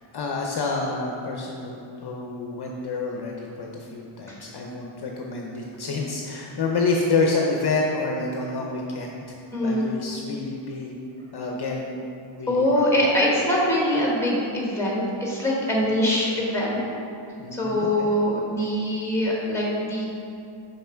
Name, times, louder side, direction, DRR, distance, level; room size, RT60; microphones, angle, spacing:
voice 1, 0.1-11.0 11.3-12.0 12.4-12.9 15.8-15.9 17.4-18.1, left 3 dB, 50° left, -1 dB, 0.6 m, -28 dB
voice 2, 9.5-9.9 12.5-16.8 17.5-20.0, left 1 dB, 5° left, -4 dB, 1.4 m, -23 dB
5.7 x 5.6 x 4.4 m, 2.5 s
wide cardioid pair, 145°, 49 cm